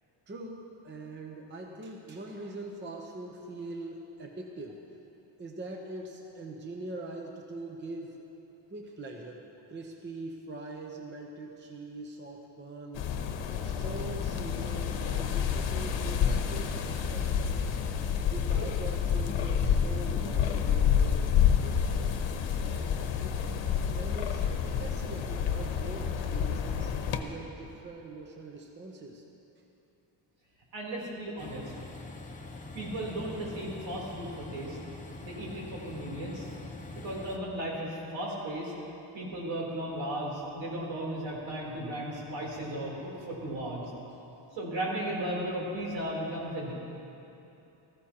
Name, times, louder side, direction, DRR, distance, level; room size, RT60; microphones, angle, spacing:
voice 1, 0.3-4.8 5.4-8.3 8.7-13.1 13.6-17.6 18.3-22.2 22.6-23.4 24.0-29.2, right 2 dB, 25° right, 1 dB, 0.7 m, -43 dB
sound 1, 13.0-27.2, left 8 dB, 70° left, 0.9 m, -29 dB
voice 2, 30.7-31.6 32.7-34.8 35.2-36.5 37.0-38.7 39.1-43.8 44.5-46.7, right 1 dB, 70° right, -4 dB, 3.5 m, -35 dB
Train, 31.4-37.4, left 3 dB, 15° left, 0.8 m, -44 dB
17.5 x 14.5 x 2.9 m, 2.9 s
cardioid pair, 160°, 46 cm